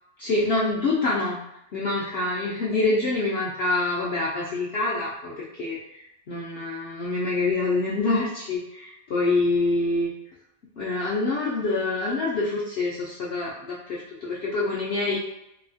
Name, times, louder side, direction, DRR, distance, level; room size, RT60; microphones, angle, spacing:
voice 1, 0.2-1.4 1.7-10.1 10.8-15.2, left 2 dB, 80° left, -5 dB, 0.5 m, -26 dB
3.0 x 2.3 x 2.5 m, 0.84 s
omnidirectional pair, 1.6 m